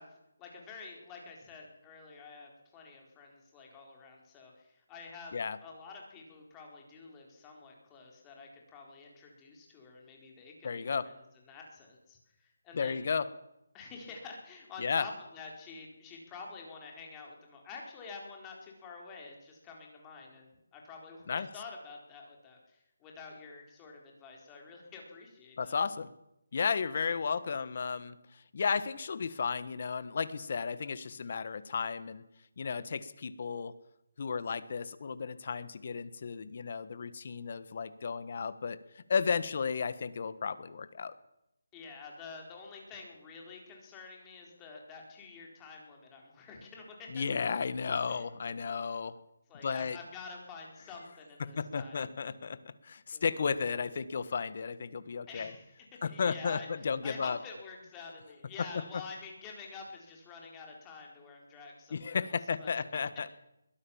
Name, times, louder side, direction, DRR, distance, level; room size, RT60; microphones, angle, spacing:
voice 1, 0.0-11.1 11.5-13.1 13.7-25.8 41.7-47.2 48.1-48.2 48.7-48.8 49.5-52.0 53.1-53.3 55.3-56.7 57.0-62.3 62.6-62.8, left 4 dB, 15° left, 0 dB, 4.3 m, -48 dB
voice 2, 10.6-11.1 12.7-13.3 14.8-15.0 21.3-21.5 25.6-26.1 26.5-32.2 32.6-33.7 34.2-41.1 47.1-49.2 49.6-50.0 51.6-55.5 56.0-57.4 61.9-63.3, left 5 dB, 45° left, 14 dB, 1.5 m, -33 dB
22.5 x 16.0 x 7.3 m, 0.84 s
hypercardioid pair, 170°, 0 cm